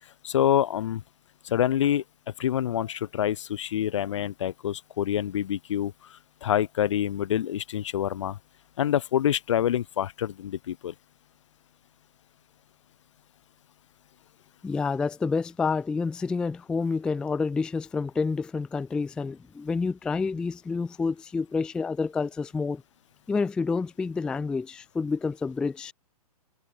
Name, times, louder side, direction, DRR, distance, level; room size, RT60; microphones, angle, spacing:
voice 1, 0.2-1.0 1.4-2.0 2.4-8.4 8.8-10.9, left 10 dB, 50° left, 0.7 m, -26 dB
voice 2, 14.6-22.8 23.3-25.9, left 4 dB, 5° left, 0.4 m, -28 dB
figure-of-eight pair, 115°, 20 cm